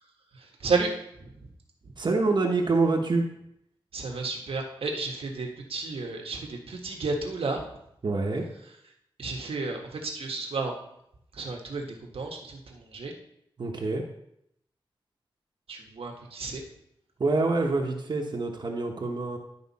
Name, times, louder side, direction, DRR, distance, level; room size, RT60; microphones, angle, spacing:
voice 1, 0.3-0.9 1.2-1.5 1.8-1.9 3.9-7.6 9.2-10.8 11.3-13.1 15.7-16.6, right 3 dB, 90° right, 2 dB, 1.5 m, -32 dB
voice 2, 2.0-3.2 8.0-8.4 13.6-14.0 17.2-19.4, right 3 dB, 55° right, 1 dB, 1.1 m, -26 dB
11.5 x 5.1 x 4.2 m, 0.77 s
wide cardioid pair, 100°, 9 cm